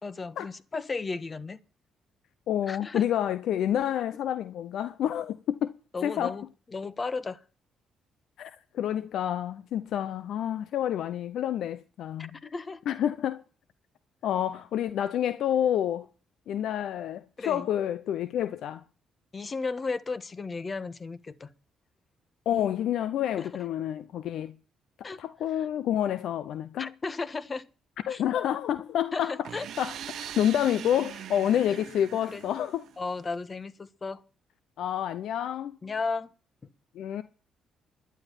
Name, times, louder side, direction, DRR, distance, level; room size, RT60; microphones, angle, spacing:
voice 1, 0.0-1.6 2.7-3.0 5.9-6.5 6.7-7.4 12.4-12.8 17.4-17.7 19.3-21.5 23.4-23.5 25.0-25.2 26.8-27.7 28.1-28.2 29.1-29.7 32.3-32.4 33.0-34.2 35.8-36.3, left 4 dB, 35° left, 1.5 m, -34 dB
voice 2, 2.5-5.7 6.0-6.4 8.4-12.3 12.9-13.4 14.2-16.1 16.5-18.8 22.5-24.5 25.0-26.9 28.1-29.5 29.8-30.0 30.4-32.9 34.8-35.8 36.9-37.2, left 10 dB, 70° left, 0.7 m, -28 dB
sound 1, 29.4-33.2, right 10 dB, 65° right, 1.0 m, -42 dB
11.5 x 10.5 x 7.3 m
hypercardioid pair, 50°, 0 cm